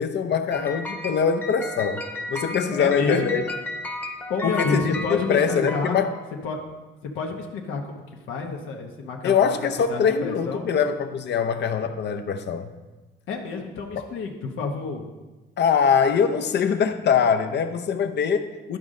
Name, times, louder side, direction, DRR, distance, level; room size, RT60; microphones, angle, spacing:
voice 1, 0.0-2.0 2.3-3.4 4.4-6.1 9.2-12.7 14.0-14.1 15.6-18.8, left 7 dB, 60° left, 8 dB, 0.7 m, -23 dB
sound 1, 0.5-6.5, left 1 dB, 10° left, 0.9 m, -34 dB
voice 2, 2.8-3.3 4.3-6.0 6.4-6.6 7.0-10.6 13.3-15.1, left 4 dB, 80° left, 1 dB, 1.0 m, -29 dB
11.5 x 5.1 x 3.7 m, 1.2 s
cardioid pair, 90°, 20 cm